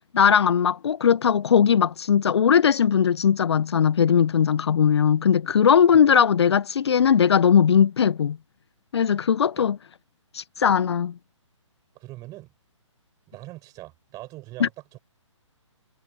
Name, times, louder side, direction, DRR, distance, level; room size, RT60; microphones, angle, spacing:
voice 1, 0.1-8.4 8.9-9.8 10.3-11.1 14.6-14.7, left 7 dB, 55° left, 0.9 m, -19 dB
voice 2, 11.9-12.5 13.3-15.0, right 18 dB, 20° right, 7.2 m, -42 dB
figure-of-eight pair, 135°, 16 cm